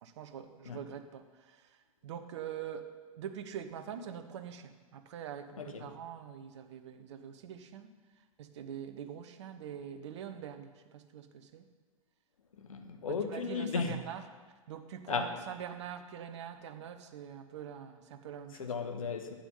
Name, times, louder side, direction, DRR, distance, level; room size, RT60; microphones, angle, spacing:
voice 1, 0.0-1.7 2.0-2.9 3.1-7.9 8.4-11.6 13.1-14.2 14.7-18.7, right 8 dB, 50° right, 1.0 m, -44 dB
voice 2, 12.7-14.0 15.1-15.3 18.6-19.3, left 5 dB, 65° left, 1.4 m, -35 dB
11.5 x 9.0 x 5.6 m
figure-of-eight pair, 100°, 19 cm